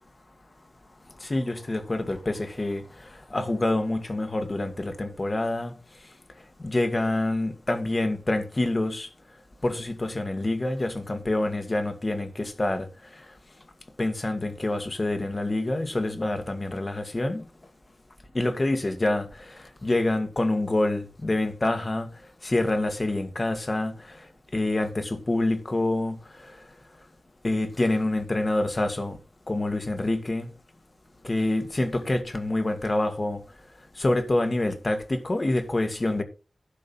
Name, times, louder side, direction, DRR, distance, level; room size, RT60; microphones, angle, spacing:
voice 1, 1.2-2.8 3.3-5.7 6.6-9.1 9.6-12.9 14.0-17.4 18.3-19.6 19.8-22.1 22.4-24.2 24.5-26.2 27.4-29.2 29.5-30.5 31.2-33.4 34.0-36.2, left 2 dB, 30° left, 2.1 m, -26 dB
12.0 x 5.1 x 7.0 m
wide cardioid pair, 105°, 0 cm